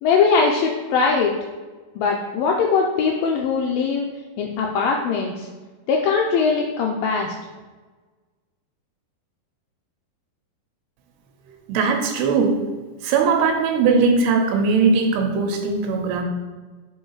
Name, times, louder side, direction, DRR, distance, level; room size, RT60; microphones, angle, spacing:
voice 1, 0.0-1.4 2.0-4.1 4.4-5.5 5.9-7.3, left 5 dB, 85° left, 0 dB, 2.1 m, -21 dB
voice 2, 11.7-12.6 13.0-16.2, right 4 dB, 80° right, 4 dB, 2.9 m, -19 dB
5.6 x 5.5 x 4.7 m, 1.3 s
omnidirectional pair, 4.7 m